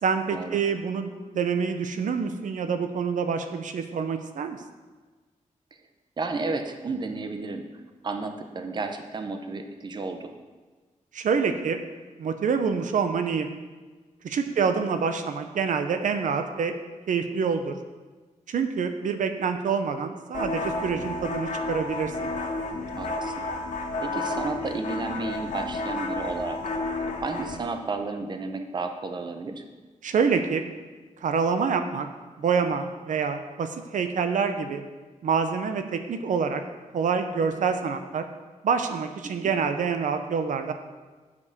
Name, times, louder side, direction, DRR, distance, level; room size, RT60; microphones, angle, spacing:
voice 1, 0.0-4.6 11.1-11.8 12.2-13.5 14.2-16.8 17.1-17.7 18.5-22.1 30.0-30.6 31.2-32.1 32.4-34.8 35.2-36.6 36.9-38.2 38.6-40.7, right 6 dB, 80° right, 7 dB, 0.7 m, -26 dB
voice 2, 6.2-7.7 8.0-10.3 14.5-14.7 22.9-23.3 24.0-26.6 27.2-29.6 39.2-39.5, right 3 dB, 35° right, 6 dB, 0.7 m, -32 dB
sound 1, 20.3-27.6, left 2 dB, 80° left, 1.4 m, -31 dB
8.3 x 5.3 x 6.7 m, 1.3 s
wide cardioid pair, 150°, 13 cm